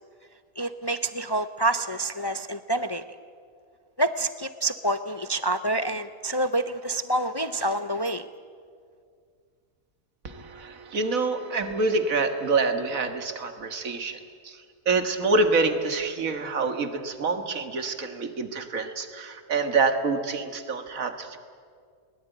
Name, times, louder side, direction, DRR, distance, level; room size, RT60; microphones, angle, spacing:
voice 1, 0.6-3.0 4.0-8.3, right 1 dB, 30° left, 11 dB, 0.4 m, -27 dB
voice 2, 10.2-14.2 14.4-14.6 14.9-21.4, right 3 dB, 75° right, 8 dB, 2.1 m, -26 dB
21.5 x 19.5 x 9.2 m, 2.1 s
omnidirectional pair, 1.5 m